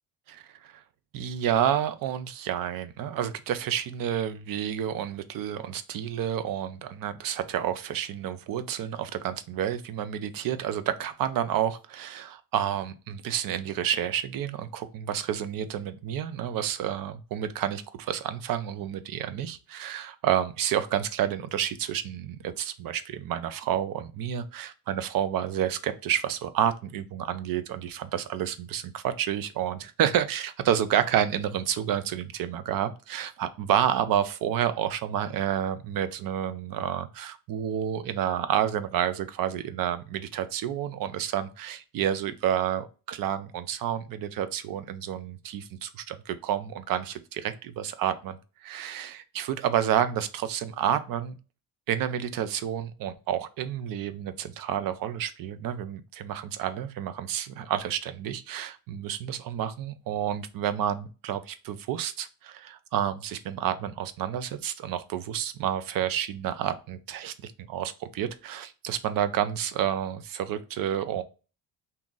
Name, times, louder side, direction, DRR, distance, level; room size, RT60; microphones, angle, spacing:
voice 1, 0.3-0.8 1.1-51.4 51.9-71.2, right 10 dB, 70° right, 11 dB, 0.5 m, -30 dB
2.8 x 2.5 x 3.7 m, 0.33 s
cardioid pair, 115°, 35 cm